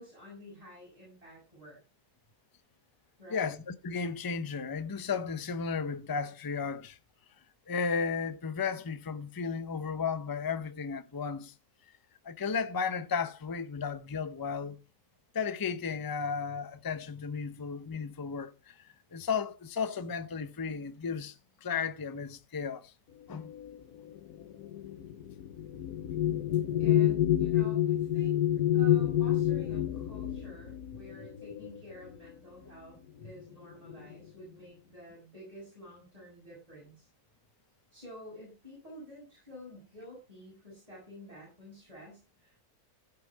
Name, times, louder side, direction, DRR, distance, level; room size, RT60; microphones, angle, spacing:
voice 1, 0.0-1.8 3.2-3.5 26.8-28.4 28.7-37.1 37.9-42.6, equal, 25° right, 6.4 m, -50 dB
voice 2, 3.3-7.0 7.7-11.5 12.2-14.8 15.3-18.8 19.1-21.3 21.6-22.9 23.3-23.5, left 5 dB, 25° left, 0.5 m, -34 dB
sound 1, 23.4-32.3 33.2-33.4 33.7-34.3, left 12 dB, 75° left, 1.4 m, -29 dB
15.5 x 5.8 x 4.6 m
omnidirectional pair, 1.6 m